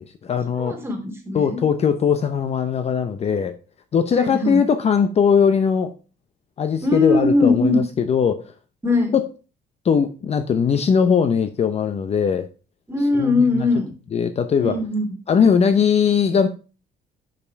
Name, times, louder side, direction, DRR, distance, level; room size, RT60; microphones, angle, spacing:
voice 1, 0.0-0.8 1.3-3.5 3.9-5.9 6.6-8.5 9.1-9.3 9.8-12.5 13.1-13.7 14.1-14.7 15.3-16.5, left 6 dB, 40° left, 9 dB, 0.7 m, -20 dB
voice 2, 0.6-1.6 4.1-4.6 6.8-7.8 8.8-9.1 12.9-13.9 14.6-15.1, left 2 dB, 15° right, 2 dB, 2.7 m, -20 dB
6.7 x 5.6 x 4.6 m, 0.34 s
cardioid pair, 110°, 17 cm